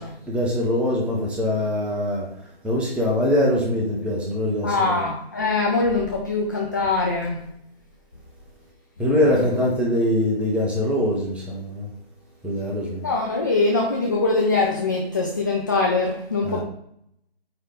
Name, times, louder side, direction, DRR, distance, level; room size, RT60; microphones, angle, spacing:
voice 1, 0.3-2.3 2.6-5.0 9.0-11.9 12.4-13.1 16.4-16.6, left 1 dB, 5° right, -3 dB, 0.7 m, -23 dB
voice 2, 4.6-7.5 9.2-9.5 13.0-16.6, left 3 dB, 20° left, -1 dB, 0.4 m, -23 dB
8.7 x 3.2 x 3.7 m, 0.73 s
figure-of-eight pair, 145°, 31 cm